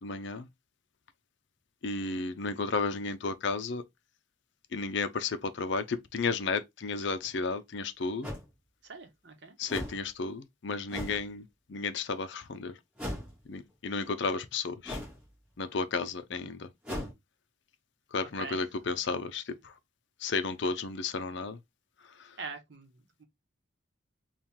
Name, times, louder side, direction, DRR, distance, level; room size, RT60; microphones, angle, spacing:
voice 1, 0.0-0.5 1.8-3.8 4.7-8.3 9.6-12.7 13.5-15.0 15.6-16.7 18.1-19.7 20.2-21.6 22.2-22.4, left 4 dB, 60° left, 0.5 m, -33 dB
sound 1, 7.2-7.3 8.2-8.5 9.7-10.0 10.9-11.2 13.0-13.4 14.8-15.2 16.8-17.1, left 1 dB, 5° right, 2.0 m, -37 dB
voice 2, 8.9-9.5 18.3-18.6 22.4-22.9, right 4 dB, 55° right, 1.0 m, -42 dB
4.4 x 2.4 x 3.5 m
head